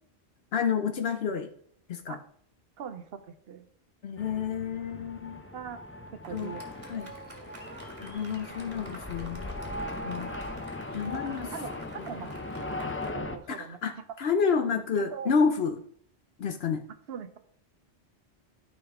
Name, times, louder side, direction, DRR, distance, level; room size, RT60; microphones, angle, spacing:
voice 1, 0.5-1.5 1.9-2.2 4.0-5.4 6.3-6.5 6.9-7.1 8.0-9.5 10.0-10.3 10.9-11.5 12.0-12.1 13.5-15.8 16.4-16.8, left 6 dB, 70° left, 7 dB, 0.9 m, -29 dB
voice 2, 2.8-3.7 5.5-5.8 6.1-6.7 11.1-12.3 13.1-13.8 15.0-15.3 17.1-17.4, right 7 dB, 70° right, 10 dB, 1.0 m, -41 dB
sound 1, 4.2-13.4, left 2 dB, 15° left, 0.5 m, -39 dB
Fireworks, 6.2-13.1, right 1 dB, 30° right, 1.7 m, -48 dB
12.5 x 5.2 x 3.6 m, 0.63 s
omnidirectional pair, 1.1 m